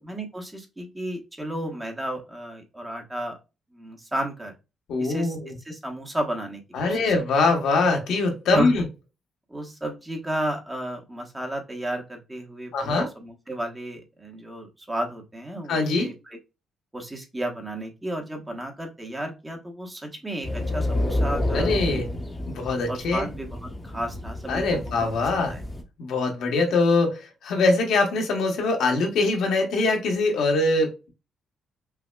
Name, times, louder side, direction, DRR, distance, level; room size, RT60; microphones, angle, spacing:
voice 1, 0.0-3.4 3.7-4.5 5.0-5.4 5.6-7.0 8.5-8.7 9.5-16.4 16.9-22.0 22.9-24.8 25.3-25.6, right 1 dB, 10° right, 1.0 m, -33 dB
voice 2, 4.9-5.5 6.7-8.8 12.7-13.1 15.7-16.1 21.5-22.1 22.5-23.3 24.5-25.6 26.0-31.1, left 3 dB, 75° left, 1.0 m, -23 dB
sound 1, 20.4-25.8, left 1 dB, 20° left, 0.8 m, -29 dB
5.6 x 2.0 x 2.2 m
cardioid pair, 90°, 0 cm